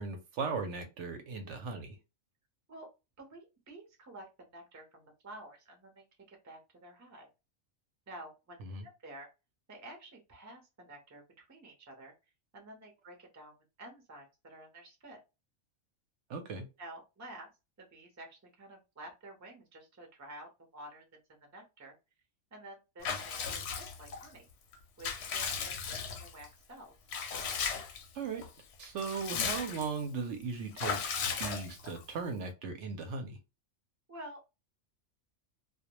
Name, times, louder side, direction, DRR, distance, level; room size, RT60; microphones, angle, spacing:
voice 1, 0.0-2.0 8.7-8.8 16.3-16.7 28.1-28.5 28.8-31.0 31.4-33.4, right 5 dB, 70° right, 0.8 m, -37 dB
voice 2, 3.2-7.3 8.1-9.3 9.7-12.1 12.5-15.2 16.8-17.5 17.8-21.9 22.5-24.5 25.0-26.9 34.1-34.4, right 1 dB, 20° right, 0.4 m, -51 dB
Water / Bathtub (filling or washing) / Liquid, 23.0-24.3 24.7-26.5 27.1-28.1 28.4-28.5 28.8-30.0 30.8-32.0, left 6 dB, 65° left, 0.7 m, -36 dB
2.2 x 2.1 x 2.9 m
omnidirectional pair, 1.4 m